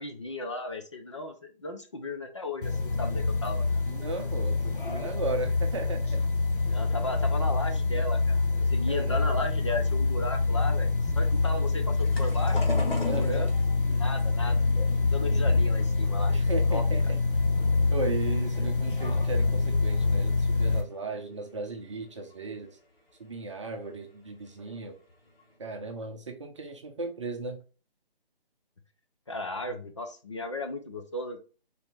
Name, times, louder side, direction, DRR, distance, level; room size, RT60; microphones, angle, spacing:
voice 1, 0.0-3.7 6.7-12.6 13.0-13.6 13.9-14.6 15.1-16.3 16.7-16.9 29.3-31.4, left 2 dB, 30° left, 5 dB, 0.5 m, -35 dB
sound 1, 2.6-20.8, left 3 dB, 60° left, 0.9 m, -26 dB
voice 2, 3.9-6.2 8.9-9.5 13.0-13.5 16.3-17.2 17.9-22.8 23.2-25.0 25.6-27.6, right 3 dB, 30° right, 4 dB, 0.7 m, -36 dB
sound 2, 12.0-17.1 17.4-18.3 18.8-19.2 19.4-19.5 20.7-20.8 21.4-21.5 22.0-22.1 22.3-22.6 23.8-24.0 24.6-24.7 25.1-25.6, left 2 dB, 85° left, 1.5 m, -38 dB
4.2 x 2.8 x 3.3 m, 0.35 s
figure-of-eight pair, 155°, 29 cm